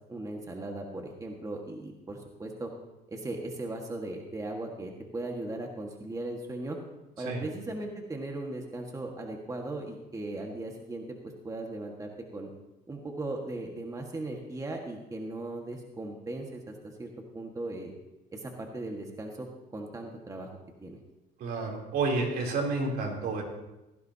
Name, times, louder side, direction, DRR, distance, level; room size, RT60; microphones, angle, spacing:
voice 1, 0.1-2.7 3.1-6.8 7.2-11.0 11.4-12.5 12.9-17.1 17.3-17.9 18.3-19.5 19.7-20.5 20.8-21.0, right 2 dB, 20° right, 1 dB, 1.7 m, -38 dB
voice 2, 21.4-23.4, right 3 dB, 65° right, -1 dB, 3.4 m, -30 dB
17.0 x 14.0 x 2.9 m, 0.98 s
cardioid pair, 110°, 17 cm